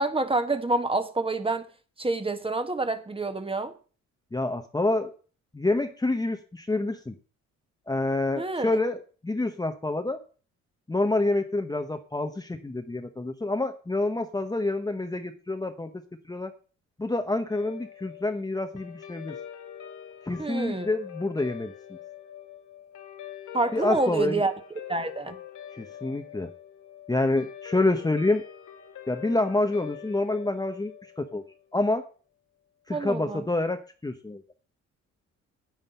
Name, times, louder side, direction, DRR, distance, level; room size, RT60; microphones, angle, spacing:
voice 1, 0.0-1.7 2.0-3.7 8.4-8.7 20.4-20.9 23.5-24.5 24.9-25.4 32.9-33.4, right 2 dB, 20° right, 1.4 m, -27 dB
voice 2, 4.3-5.1 5.5-7.1 7.9-10.2 10.9-15.9 16.3-16.5 17.0-19.3 20.2-21.7 23.7-24.4 25.7-26.5 27.1-28.4 29.1-31.4 31.7-32.0 32.9-34.4, left 2 dB, 15° left, 1.0 m, -27 dB
Guitar, 17.5-32.1, left 10 dB, 80° left, 2.0 m, -44 dB
9.3 x 8.9 x 5.6 m
cardioid pair, 90°, 30 cm